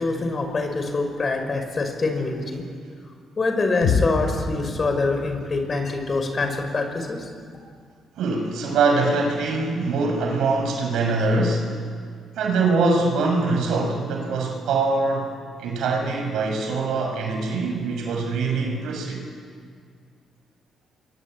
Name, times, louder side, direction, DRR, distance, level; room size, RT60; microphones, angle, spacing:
voice 1, 0.0-2.6 3.4-7.3, left 3 dB, 35° left, 5 dB, 5.7 m, -25 dB
sound 1, 3.8-7.8, left 5 dB, 85° left, 4.7 m, -29 dB
voice 2, 8.2-11.7 12.4-15.3 15.6-19.2, right 3 dB, 80° right, 3 dB, 6.7 m, -23 dB
27.5 x 23.5 x 9.3 m, 2.1 s
cardioid pair, 90°, 0 cm